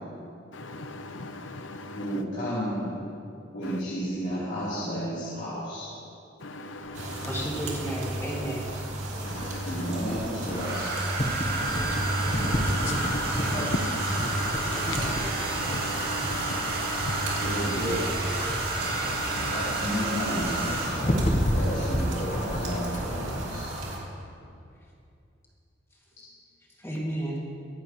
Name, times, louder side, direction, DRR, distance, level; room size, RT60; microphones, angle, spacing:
voice 1, 0.5-2.2 3.6-3.8 6.4-7.5 9.2-9.9 11.6-17.7 18.8-19.7, left 1 dB, 80° left, 0.9 m, -38 dB
voice 2, 1.9-3.0 3.5-5.9 9.5-10.9 17.4-18.1 19.4-23.7, equal, 60° left, 3.8 m, -32 dB
sound 1, 6.9-24.0, right 1 dB, 90° right, 2.6 m, -34 dB
sound 2, 7.2-23.5, equal, 35° left, 1.2 m, -33 dB
voice 3, 7.3-8.7 26.8-27.4, right 1 dB, 15° left, 2.4 m, -32 dB
Domestic sounds home sounds, 10.5-21.2 22.5-22.7 23.0-23.3, right 2 dB, 55° right, 2.3 m, -31 dB
23.5 x 10.5 x 3.2 m
head